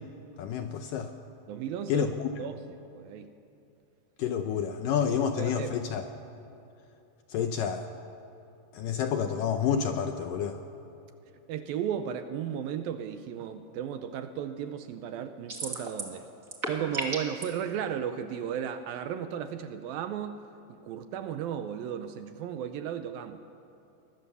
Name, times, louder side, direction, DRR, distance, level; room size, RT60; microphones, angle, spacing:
voice 1, 0.4-1.1 1.9-2.3 4.2-6.1 7.3-7.9 8.7-10.6, left 8 dB, 75° left, 7 dB, 2.1 m, -29 dB
voice 2, 1.5-2.1 2.4-3.3 5.0-5.8 11.5-16.2 16.7-20.4 20.7-23.4, right 9 dB, 75° right, 9 dB, 2.3 m, -35 dB
sound 1, 15.5-16.2 16.4-17.4, right 3 dB, 30° right, 1.6 m, -33 dB
23.0 x 20.0 x 6.9 m, 2.8 s
omnidirectional pair, 4.7 m